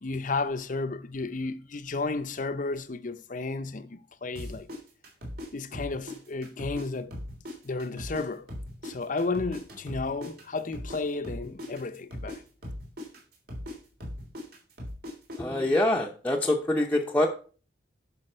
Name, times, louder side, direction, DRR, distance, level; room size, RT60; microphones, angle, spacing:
voice 1, 0.0-4.7 5.5-7.1 7.6-8.5 8.8-12.4, left 3 dB, 45° left, 0.7 m, -32 dB
sound 1, 4.4-6.9 7.1-11.0 11.2-15.4, left 1 dB, 55° right, 3.4 m, -39 dB
voice 2, 15.4-17.3, left 1 dB, 10° left, 0.8 m, -25 dB
11.0 x 5.7 x 4.4 m
head